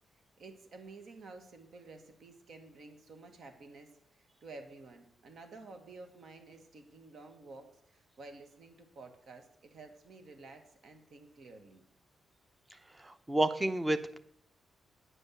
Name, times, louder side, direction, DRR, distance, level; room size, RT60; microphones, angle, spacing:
voice 1, 0.4-11.8, right 3 dB, 65° right, 6 dB, 1.7 m, -52 dB
voice 2, 13.0-14.2, right 1 dB, 15° right, 11 dB, 0.9 m, -30 dB
9.8 x 5.4 x 8.0 m, 0.68 s
cardioid pair, 90°, 0 cm